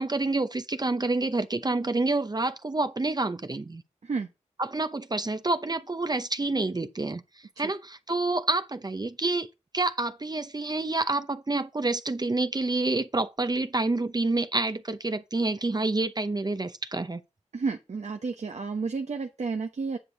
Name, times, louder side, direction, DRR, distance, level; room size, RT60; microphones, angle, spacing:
voice 1, 0.0-3.8 4.6-7.2 7.6-9.5 9.7-17.2, right 2 dB, 35° right, 0.8 m, -28 dB
voice 2, 17.5-20.0, right 4 dB, 70° right, 1.1 m, -31 dB
9.9 x 6.3 x 4.0 m
cardioid pair, 40°, 12 cm